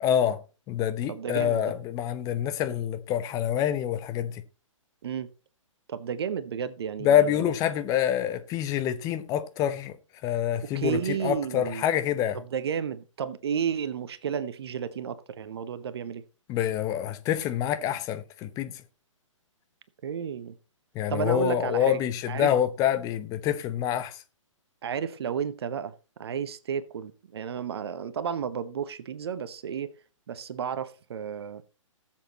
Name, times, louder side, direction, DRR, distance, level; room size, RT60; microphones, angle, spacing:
voice 1, 0.0-0.4 0.7-4.4 7.0-9.9 10.2-12.4 16.5-18.8 20.9-24.2, left 10 dB, 20° left, 0.9 m, -26 dB
voice 2, 1.1-1.8 5.0-5.3 5.9-7.5 10.6-11.8 12.3-16.2 20.0-20.6 21.1-22.0 22.3-22.5 24.8-25.9 26.2-29.9 30.3-31.7, right 7 dB, 50° right, 0.9 m, -32 dB
18.5 x 7.5 x 2.9 m
figure-of-eight pair, 125°, 17 cm